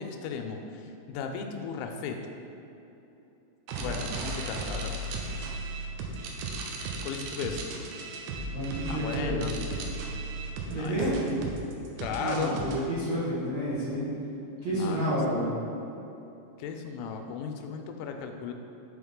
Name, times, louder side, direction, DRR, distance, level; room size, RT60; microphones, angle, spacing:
voice 1, 0.0-2.2 3.8-5.0 7.0-7.6 8.9-9.5 10.7-10.9 12.0-12.6 14.7-15.2 16.6-18.5, left 6 dB, 90° left, 4 dB, 3.0 m, -36 dB
sound 1, 3.7-12.8, right 2 dB, 90° right, 2.3 m, -35 dB
voice 2, 8.5-9.4 10.7-11.4 12.2-14.1 14.6-15.5, equal, 70° right, -13 dB, 1.6 m, -29 dB
9.7 x 3.8 x 3.6 m, 3.0 s
omnidirectional pair, 5.3 m